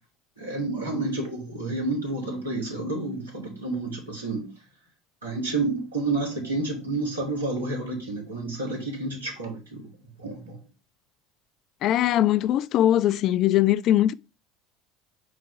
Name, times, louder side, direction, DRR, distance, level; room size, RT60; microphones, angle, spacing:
voice 1, 0.4-4.5 5.2-9.9 10.2-10.6, right 2 dB, 85° right, 2.4 m, -30 dB
voice 2, 11.8-14.1, left 12 dB, 50° left, 0.3 m, -21 dB
4.8 x 3.7 x 5.6 m
figure-of-eight pair, 70°, 0 cm